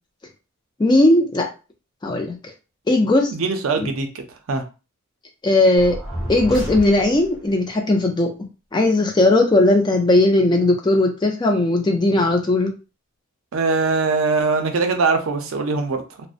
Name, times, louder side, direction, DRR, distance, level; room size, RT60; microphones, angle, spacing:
voice 1, 0.8-1.5 2.0-2.3 2.9-3.3 3.8-3.9 5.4-6.0 6.3-8.3 8.7-12.7, left 2 dB, 20° left, 3 dB, 0.3 m, -17 dB
voice 2, 3.3-4.6 13.5-16.3, right 4 dB, 65° right, 6 dB, 0.4 m, -22 dB
sound 1, 5.8-7.5, equal, ahead, 0.7 m, -30 dB
2.5 x 2.0 x 2.4 m, 0.31 s
head